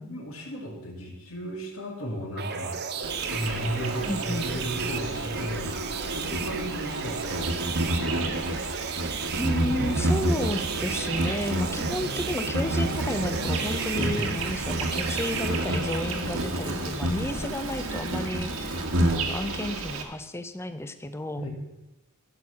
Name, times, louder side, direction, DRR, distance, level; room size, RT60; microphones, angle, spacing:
voice 1, 0.0-2.8 3.3-8.2 13.9-14.3 21.4-21.5, equal, 65° left, 0 dB, 2.6 m, -35 dB
sound 1, 2.4-16.0, right 6 dB, 50° right, 0.8 m, -35 dB
Insect, 3.0-20.0, right 1 dB, 70° right, 1.5 m, -29 dB
voice 2, 4.0-4.6 9.4-21.4, left 1 dB, 10° left, 10 dB, 0.5 m, -32 dB
15.0 x 6.1 x 5.9 m, 1.0 s
head